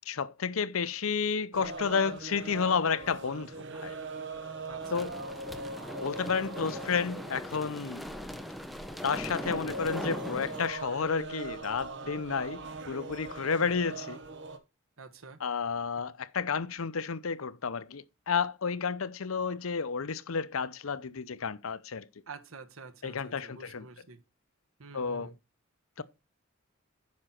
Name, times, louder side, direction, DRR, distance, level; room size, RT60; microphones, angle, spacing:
voice 1, 0.1-3.9 4.9-5.1 6.0-8.0 9.0-14.2 15.4-22.0 23.0-23.9 24.9-25.3 26.0-26.1, left 5 dB, 85° left, 0.7 m, -31 dB
sound 1, 1.5-14.6, right 2 dB, 60° right, 1.4 m, -41 dB
voice 2, 4.6-5.1 13.6-13.7 15.0-15.4 22.3-24.2 24.8-25.3, right 4 dB, 85° right, 1.4 m, -48 dB
sound 2, 4.8-10.7, equal, ahead, 0.9 m, -40 dB
9.6 x 6.3 x 4.4 m
head